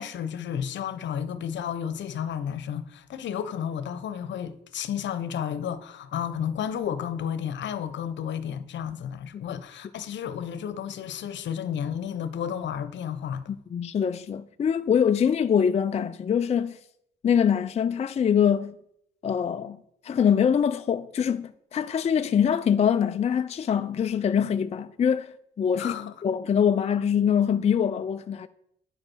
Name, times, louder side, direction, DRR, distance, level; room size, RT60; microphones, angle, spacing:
voice 1, 0.0-13.6 25.7-26.1, left 8 dB, 65° left, 0.9 m, -32 dB
voice 2, 13.7-16.8 17.2-18.8 19.2-25.9 26.2-28.5, left 8 dB, 35° left, 0.4 m, -24 dB
9.3 x 5.1 x 6.2 m
cardioid pair, 90°, 20 cm